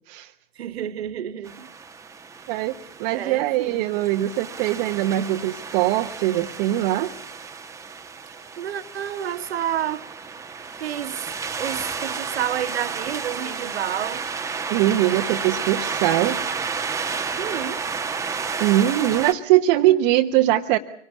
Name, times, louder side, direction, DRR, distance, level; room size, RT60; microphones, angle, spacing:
voice 1, 0.6-1.7 3.1-3.9 8.6-10.0 10.8-11.2 11.6-14.2 17.4-17.8, right 10 dB, 65° right, 1.6 m, -30 dB
sound 1, 1.5-19.3, right 5 dB, 10° right, 1.4 m, -32 dB
voice 2, 3.0-7.1 14.7-16.4 18.6-20.8, right 14 dB, 40° right, 1.2 m, -21 dB
25.0 x 18.5 x 8.3 m
hypercardioid pair, 110°, 33 cm